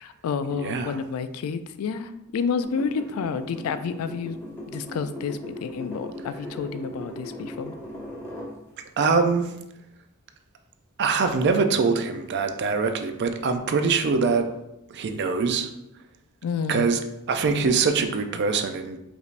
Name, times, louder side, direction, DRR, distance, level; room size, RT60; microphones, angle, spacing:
voice 1, 0.0-4.4 4.7-7.8 16.4-16.9, left 5 dB, 70° left, 11 dB, 0.3 m, -30 dB
voice 2, 0.5-1.0 9.0-9.6 11.0-14.5 14.9-15.7 16.7-19.0, right 4 dB, 50° right, 7 dB, 0.4 m, -23 dB
sound 1, 2.6-8.5 9.0-9.1, left 1 dB, 10° left, 0.9 m, -38 dB
5.1 x 3.3 x 2.5 m, 0.87 s
head